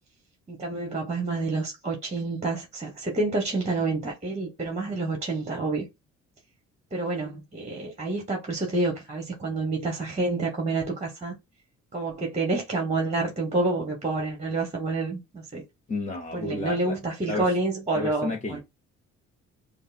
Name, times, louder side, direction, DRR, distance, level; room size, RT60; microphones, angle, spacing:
voice 1, 0.5-5.8 6.9-11.4 11.9-15.6 16.3-18.6, right 2 dB, 20° right, 1.1 m, -28 dB
voice 2, 15.9-17.0 17.3-17.5 17.9-18.6, left 3 dB, 25° left, 0.7 m, -31 dB
5.2 x 2.0 x 2.5 m
cardioid pair, 90°, 30 cm